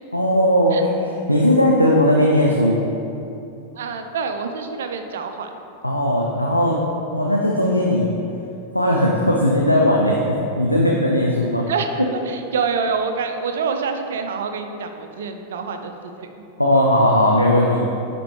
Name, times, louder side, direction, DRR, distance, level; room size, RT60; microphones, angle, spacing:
voice 1, 0.1-2.8 5.8-6.8 7.1-8.1 8.7-11.7 16.6-17.8, left 1 dB, 90° left, -2 dB, 0.5 m, -18 dB
voice 2, 3.8-5.5 11.7-16.3, right 5 dB, 60° right, 6 dB, 0.5 m, -26 dB
10.5 x 4.2 x 3.2 m, 2.8 s
figure-of-eight pair, 90°, 0 cm